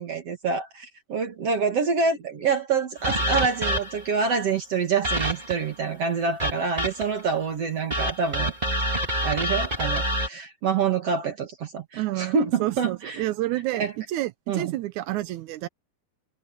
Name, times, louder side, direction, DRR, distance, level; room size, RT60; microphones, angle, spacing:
voice 1, 0.0-8.5 9.2-13.2 13.7-13.9 14.5-14.8, right 5 dB, 50° right, 2.3 m, -26 dB
sound 1, 3.0-4.1 5.0-5.7 6.4-7.2 7.9-10.3, equal, 25° right, 0.9 m, -27 dB
voice 2, 11.9-12.3 12.6-15.7, right 16 dB, 80° right, 1.7 m, -29 dB
omnidirectional pair, 4.2 m